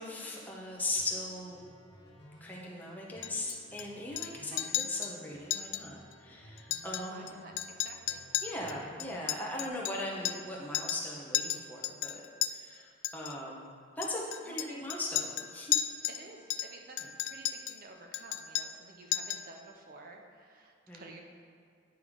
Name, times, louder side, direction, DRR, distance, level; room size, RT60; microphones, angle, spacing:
voice 1, 0.0-1.6 2.4-7.3 8.4-12.2 12.5-13.7 14.0-15.8 20.9-21.1, left 1 dB, 10° left, -3 dB, 0.9 m, -39 dB
sound 1, 1.0-9.7, equal, 60° left, 1.1 m, -56 dB
Chink clink, 3.2-3.8 4.2-4.3 4.6-5.1 5.5-5.8 6.1-6.2 6.6-7.3 7.6-10.5 10.7-11.1 11.3-12.5 13.0-13.3 14.0-16.2 16.5-17.8 18.1-18.8 19.1-19.5, left 12 dB, 80° left, 0.3 m, -34 dB
voice 2, 7.0-8.2 14.4-14.9 16.0-21.2, right 2 dB, 45° right, 2 dB, 0.6 m, -51 dB
9.1 x 3.4 x 4.9 m, 2.3 s
head